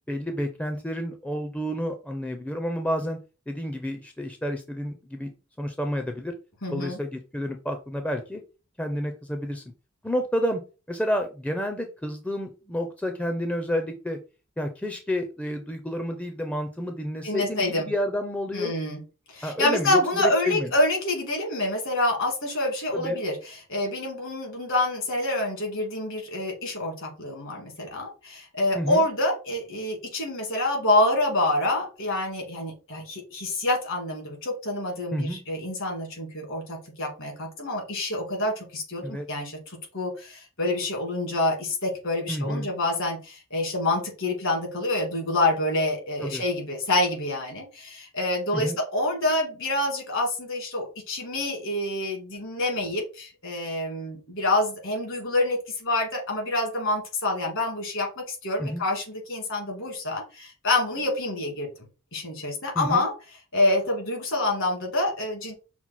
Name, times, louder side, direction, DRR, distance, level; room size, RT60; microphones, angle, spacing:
voice 1, 0.1-3.2 3.5-5.3 5.6-6.3 6.7-8.4 8.8-9.6 10.0-10.6 10.9-14.2 14.6-18.7 19.4-20.7 22.9-23.2 28.7-29.1 35.1-35.4 39.0-39.3 42.3-42.7 46.2-46.4 48.5-48.8 58.6-58.8 62.7-63.1, equal, 5° left, 5 dB, 0.5 m, -30 dB
voice 2, 6.6-7.0 17.2-17.9 18.5-19.0 19.3-39.6 39.9-61.7 62.1-63.1 63.5-65.5, left 2 dB, 65° left, 1 dB, 2.1 m, -27 dB
5.9 x 2.1 x 4.1 m, 0.32 s
head